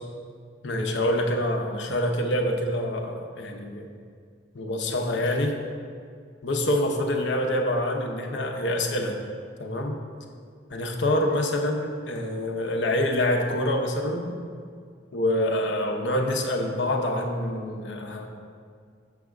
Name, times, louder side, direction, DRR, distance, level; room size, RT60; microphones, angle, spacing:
voice 1, 0.6-3.9 4.5-5.6 6.4-9.2 9.6-10.0 10.7-14.4 15.1-18.3, left 1 dB, 80° left, 3 dB, 0.8 m, -26 dB
6.8 x 3.6 x 6.3 m, 2.1 s
head